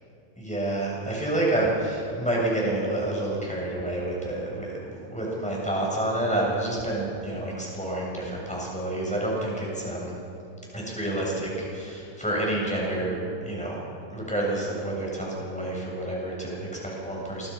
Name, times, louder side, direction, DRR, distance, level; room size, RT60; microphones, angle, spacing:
voice 1, 0.4-10.2 10.7-13.8 14.1-17.5, right 1 dB, ahead, -4 dB, 7.2 m, -29 dB
27.5 x 23.5 x 5.7 m, 2.6 s
omnidirectional pair, 3.4 m